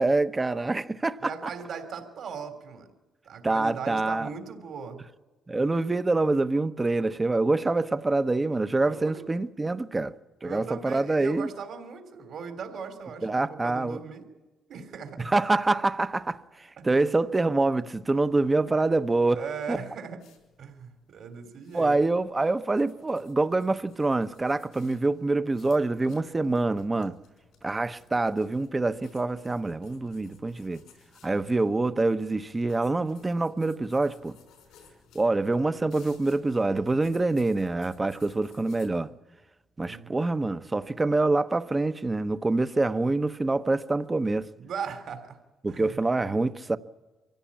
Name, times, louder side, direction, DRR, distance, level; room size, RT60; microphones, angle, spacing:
voice 1, 0.0-1.3 3.4-4.3 5.5-10.1 10.4-11.5 13.2-14.0 15.2-19.4 19.7-19.8 21.7-27.1 27.6-30.8 31.2-34.4 35.1-39.1 39.8-44.5 45.6-46.8, right 2 dB, 20° right, 0.9 m, -26 dB
voice 2, 1.2-2.9 3.2-5.0 8.8-9.2 10.4-14.2 14.7-15.3 16.8-17.1 19.3-20.2 20.6-22.0 39.8-40.2 44.6-45.4 45.7-46.0, right 6 dB, 65° right, 3.3 m, -38 dB
sound 1, 20.2-38.9, left 6 dB, 85° left, 5.4 m, -58 dB
24.5 x 16.0 x 8.7 m
cardioid pair, 90°, 0 cm